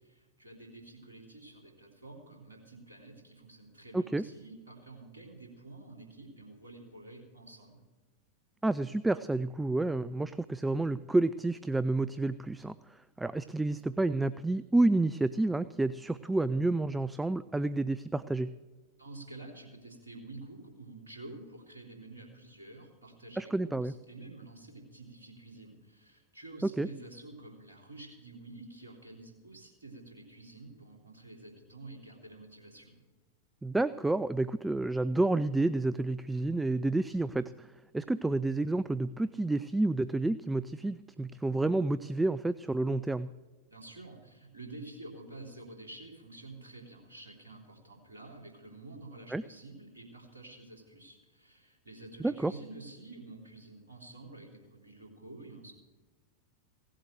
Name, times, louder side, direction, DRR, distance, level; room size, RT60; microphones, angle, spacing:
voice 1, 0.0-7.8 19.0-32.9 43.7-55.7, right 2 dB, 75° right, 0 dB, 3.4 m, -49 dB
voice 2, 3.9-4.2 8.6-18.5 23.4-23.9 26.6-26.9 33.6-37.7 37.9-43.3 49.3-49.4 52.2-52.5, right 2 dB, 5° right, 14 dB, 0.3 m, -30 dB
17.0 x 7.7 x 7.7 m, 1.2 s
figure-of-eight pair, 90°, 0 cm